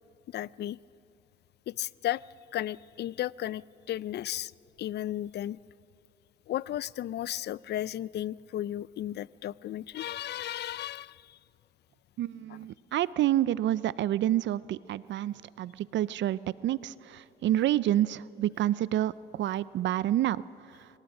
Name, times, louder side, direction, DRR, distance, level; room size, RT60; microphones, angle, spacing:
voice 1, 0.3-0.8 1.7-2.2 2.5-3.6 3.9-4.5 4.8-5.6 6.5-11.4, left 13 dB, 60° left, 22 dB, 0.4 m, -34 dB
voice 2, 12.2-20.9, right 13 dB, 65° right, 19 dB, 0.4 m, -29 dB
25.0 x 18.0 x 6.1 m, 2.6 s
cardioid pair, 90°, 20 cm